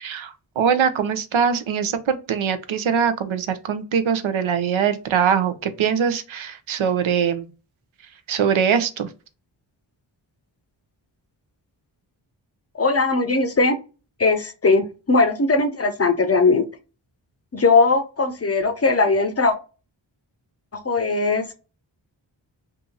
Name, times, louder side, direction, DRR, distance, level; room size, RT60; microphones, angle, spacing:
voice 1, 0.0-7.5 8.3-9.1, right 7 dB, 75° right, 10 dB, 0.7 m, -22 dB
voice 2, 12.7-13.8 14.2-16.7 17.5-19.5 20.7-21.5, left 3 dB, 30° left, 9 dB, 0.6 m, -19 dB
2.8 x 2.5 x 3.8 m, 0.33 s
cardioid pair, 45°, 48 cm